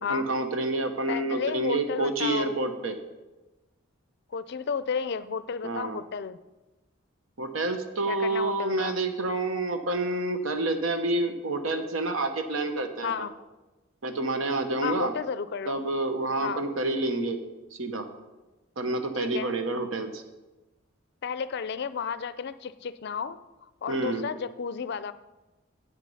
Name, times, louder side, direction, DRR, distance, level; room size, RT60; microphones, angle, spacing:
voice 1, 0.1-3.0 5.6-6.0 7.4-13.3 14.0-15.1 15.7-17.4 17.7-18.1 18.8-20.2 23.9-24.3, right 2 dB, 80° right, 7 dB, 1.1 m, -28 dB
voice 2, 1.1-2.6 4.3-6.4 8.1-9.0 13.0-13.3 14.8-15.8 16.4-16.6 19.1-19.5 21.2-23.4 23.8-25.1, left 6 dB, 55° left, 14 dB, 0.4 m, -32 dB
8.4 x 8.2 x 5.5 m, 1.1 s
head